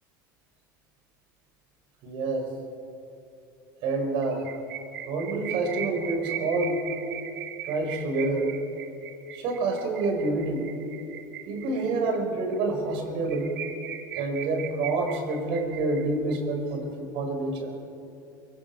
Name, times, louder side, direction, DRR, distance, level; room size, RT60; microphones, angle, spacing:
voice 1, 2.0-2.5 3.8-4.5 5.1-6.8 7.6-8.5 9.3-10.7 11.4-13.6 14.1-17.7, right 3 dB, 55° right, 3 dB, 5.0 m, -28 dB
sound 1, 4.2-12.2 12.5-12.6 12.9-13.0 13.3-16.4, right 10 dB, 75° right, 1.7 m, -39 dB
24.0 x 23.5 x 4.8 m, 2.7 s
hypercardioid pair, 75°, 11 cm